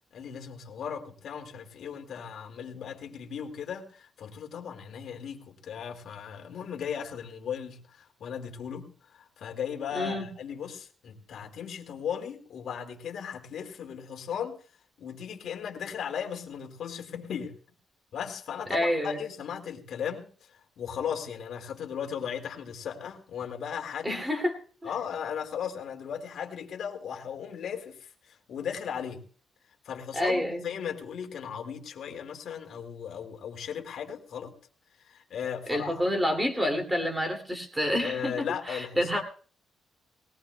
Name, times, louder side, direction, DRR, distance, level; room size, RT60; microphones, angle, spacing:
voice 1, 0.1-14.6 15.0-17.6 18.1-24.2 24.8-29.2 29.8-34.5 34.9-35.9 38.0-39.2, left 8 dB, 70° left, 3 dB, 2.0 m, -37 dB
voice 2, 9.9-10.3 18.7-19.2 24.0-24.9 30.1-30.6 35.7-39.2, equal, 10° right, 4 dB, 2.4 m, -28 dB
20.0 x 18.0 x 2.2 m, 0.42 s
cardioid pair, 120°, 0 cm